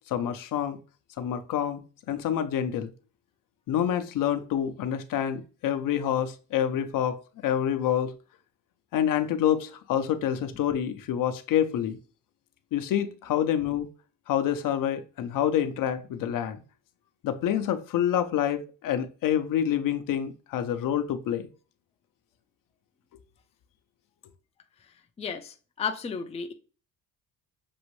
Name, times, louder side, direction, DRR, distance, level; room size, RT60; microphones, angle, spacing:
voice 1, 0.1-0.8 1.2-1.8 2.1-2.9 3.7-8.1 8.9-12.0 12.7-13.9 14.3-16.6 17.2-21.5, left 10 dB, 60° left, 0.6 m, -27 dB
voice 2, 25.2-26.5, left 6 dB, 20° left, 0.5 m, -33 dB
6.2 x 2.6 x 3.1 m
cardioid pair, 110°, 36 cm